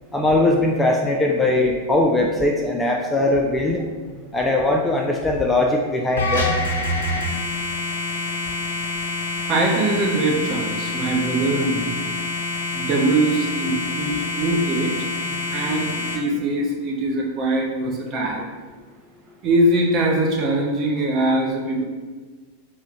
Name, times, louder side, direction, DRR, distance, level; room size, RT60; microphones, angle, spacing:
voice 1, 0.1-3.8 4.3-6.6 14.1-14.2, left 2 dB, 10° left, 0 dB, 0.3 m, -20 dB
sound 1, 6.2-16.2, left 3 dB, 65° left, 0.6 m, -26 dB
voice 2, 9.5-12.1 12.7-14.9 15.2-18.5 19.4-21.8, right 2 dB, 30° right, -1 dB, 0.8 m, -22 dB
4.3 x 2.1 x 4.1 m, 1.4 s
figure-of-eight pair, 90°, 0 cm